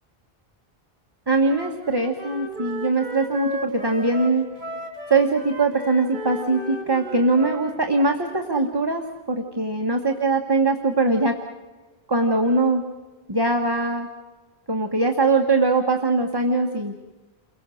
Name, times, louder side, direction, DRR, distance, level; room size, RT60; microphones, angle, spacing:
voice 1, 1.3-4.5 5.1-11.4 12.1-12.8 13.3-14.1 14.7-16.9, right 3 dB, 25° right, 3 dB, 1.3 m, -21 dB
Wind instrument woodwind instrument, 1.4-7.8, equal, 40° right, 3.5 m, -35 dB
29.5 x 22.5 x 6.3 m, 1.2 s
omnidirectional pair, 1.0 m